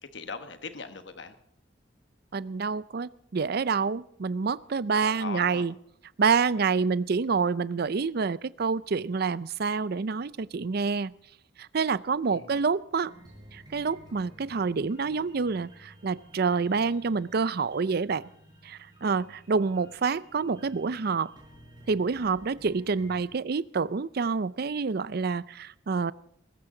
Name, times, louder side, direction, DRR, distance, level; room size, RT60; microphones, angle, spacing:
voice 1, 0.0-1.3 4.9-5.6 6.6-6.7 12.3-12.6, left 4 dB, 60° left, 9 dB, 1.3 m, -40 dB
voice 2, 2.3-5.7 6.2-11.1 11.6-13.1 13.5-18.3 18.6-21.3 21.9-26.1, right 5 dB, 50° right, 19 dB, 0.5 m, -27 dB
sound 1, 13.0-23.2, equal, 20° right, 6.6 m, -54 dB
20.0 x 16.5 x 3.9 m, 0.72 s
head